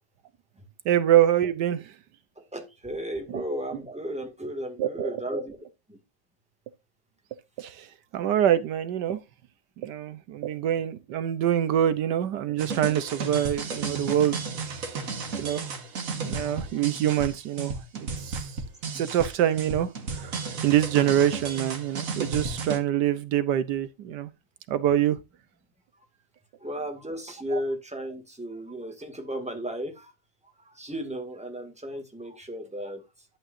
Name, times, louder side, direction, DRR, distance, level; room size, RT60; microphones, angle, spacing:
voice 1, 0.8-1.9 3.3-3.4 4.8-5.2 7.6-7.9 8.1-9.2 9.8-14.4 14.7-14.8 15.4-15.7 16.2-18.6 18.9-24.3 24.7-25.2 27.5-27.6, right 11 dB, 75° right, 1.4 m, -25 dB
voice 2, 2.4-5.6 5.9-6.0 15.6-15.7 26.6-30.1 30.6-33.0, equal, 5° right, 2.0 m, -34 dB
sound 1, 12.6-22.8, right 4 dB, 55° right, 1.7 m, -33 dB
11.0 x 8.7 x 2.6 m
omnidirectional pair, 1.8 m